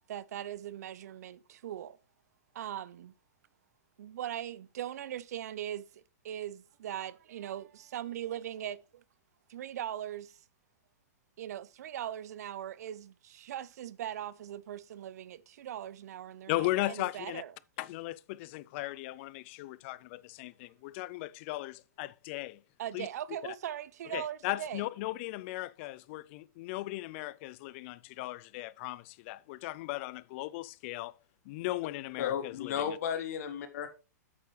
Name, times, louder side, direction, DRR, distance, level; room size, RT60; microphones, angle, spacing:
voice 1, 0.1-2.0 2.5-3.1 4.0-9.0 9.5-10.4 11.4-17.5 22.8-24.9, right 11 dB, 65° right, 0.6 m, -40 dB
voice 2, 16.5-17.4 17.8-22.6 22.9-23.1 24.1-31.1 31.4-33.0, left 18 dB, 45° left, 0.4 m, -37 dB
voice 3, 32.2-33.9, left 8 dB, 65° left, 1.5 m, -34 dB
8.6 x 6.8 x 3.2 m
hypercardioid pair, 130°, 9 cm